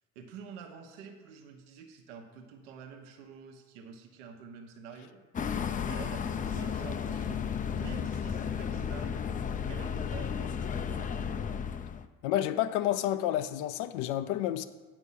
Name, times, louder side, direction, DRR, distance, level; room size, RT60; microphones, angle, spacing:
voice 1, 0.1-5.2 5.5-9.3 9.7-11.2, right 6 dB, 85° right, 0.9 m, -48 dB
sound 1, 5.3-12.1, left 7 dB, 25° left, 0.4 m, -33 dB
voice 2, 12.2-14.7, left 12 dB, 75° left, 0.6 m, -30 dB
8.2 x 5.3 x 5.5 m
supercardioid pair, 80°, 35 cm